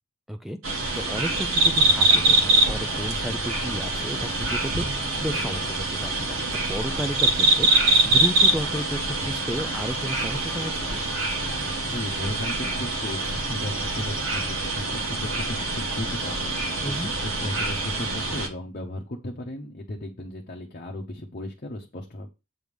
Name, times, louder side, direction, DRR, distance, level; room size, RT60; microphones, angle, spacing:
voice 1, 0.3-11.0 16.8-17.1, equal, ahead, 8 dB, 0.4 m, -33 dB
sound 1, 0.6-18.5, right 2 dB, 70° right, 1.5 m, -24 dB
voice 2, 11.9-22.3, left 1 dB, 45° left, -1 dB, 0.9 m, -35 dB
7.7 x 3.3 x 5.2 m, 0.27 s
head